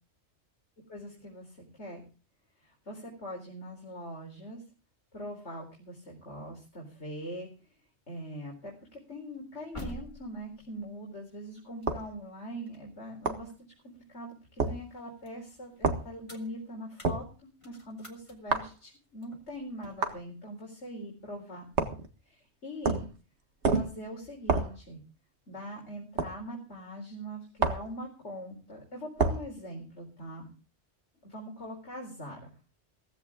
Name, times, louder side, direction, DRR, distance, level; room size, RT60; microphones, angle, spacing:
voice 1, 0.9-2.0 2.6-4.6 5.1-7.5 8.1-21.7 22.3-23.1 23.7-25.0 25.5-30.5 31.2-32.4, equal, 75° left, -1 dB, 4.6 m, -42 dB
sound 1, 9.3-14.3 14.7-20.2, equal, 25° left, 2.7 m, -50 dB
sound 2, 11.9-12.1 13.3-13.5 14.6-14.8 15.8-16.1 17.0-17.3 18.5-18.7 20.0-20.2 21.8-22.1 22.8-23.1 23.6-24.0 24.5-24.8 26.2-26.4 27.6-27.9 29.2-29.5, right 4 dB, 75° right, 1.9 m, -28 dB
16.5 x 15.5 x 3.7 m, 0.33 s
omnidirectional pair, 1.2 m